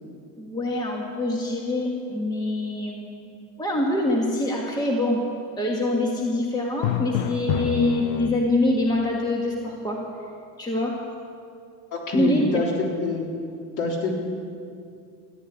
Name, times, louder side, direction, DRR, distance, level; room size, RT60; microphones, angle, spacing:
voice 1, 0.4-3.3 3.6-5.2 5.6-10.0 10.6-10.9 12.1-12.6, left 1 dB, 10° left, -1 dB, 1.5 m, -25 dB
Drum, 6.8-8.8, left 13 dB, 85° left, 0.6 m, -27 dB
voice 2, 11.9-13.3 13.8-14.1, left 3 dB, 45° left, -1 dB, 3.5 m, -26 dB
14.5 x 10.0 x 9.7 m, 2.4 s
cardioid pair, 150°, 43 cm